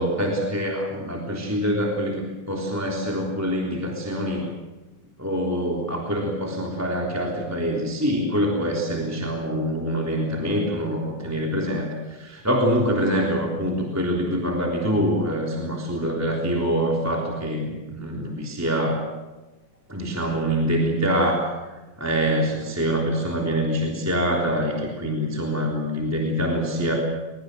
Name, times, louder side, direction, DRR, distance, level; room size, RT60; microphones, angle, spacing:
voice 1, 0.0-4.5 5.2-19.1 19.9-21.7 22.0-26.9, equal, 5° right, -1 dB, 3.2 m, -25 dB
23.0 x 22.5 x 7.9 m, 1.1 s
omnidirectional pair, 3.4 m